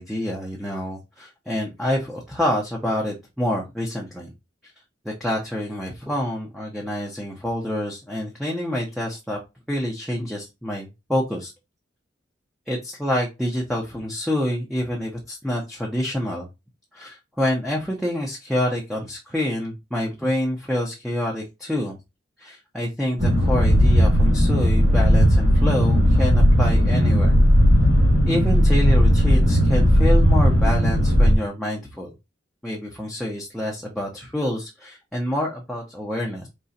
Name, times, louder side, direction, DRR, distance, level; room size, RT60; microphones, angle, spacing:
voice 1, 0.0-4.3 5.0-9.4 9.7-11.5 12.7-16.5 16.9-22.0 22.4-27.4 28.2-32.1 32.6-36.5, left 1 dB, ahead, -3 dB, 0.8 m, -27 dB
sound 1, 23.2-31.4, equal, 35° right, 2.2 m, -16 dB
5.0 x 3.1 x 2.8 m, 0.24 s
head